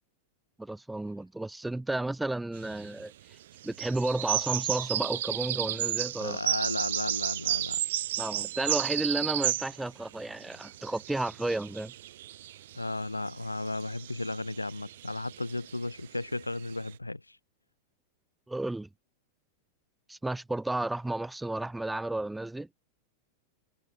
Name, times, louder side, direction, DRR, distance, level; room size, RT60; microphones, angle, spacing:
voice 1, 0.6-3.4 3.6-6.4 8.2-11.9 18.5-18.9 20.1-22.7, right 2 dB, 5° right, 5.9 m, -32 dB
sound 1, 2.6-3.0 3.6-9.9 10.2-16.9, right 13 dB, 60° right, 1.4 m, -33 dB
voice 2, 6.2-7.8 12.7-17.4, left 2 dB, 85° left, 2.6 m, -34 dB
figure-of-eight pair, 90°, 0 cm